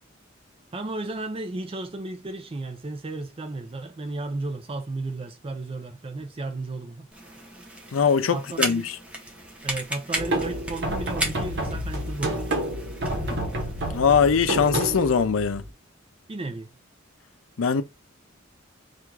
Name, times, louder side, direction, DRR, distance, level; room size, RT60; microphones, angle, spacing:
voice 1, 0.7-7.1 8.3-8.8 9.6-12.6 16.3-16.7, right 2 dB, 30° right, 0.5 m, -34 dB
sound 1, 7.1-15.2, right 1 dB, 5° right, 0.8 m, -36 dB
voice 2, 7.9-9.0 13.9-15.6 17.6-17.8, left 6 dB, 80° left, 0.5 m, -21 dB
sound 2, 10.1-15.7, right 1 dB, 60° right, 1.0 m, -29 dB
3.5 x 2.5 x 4.6 m
head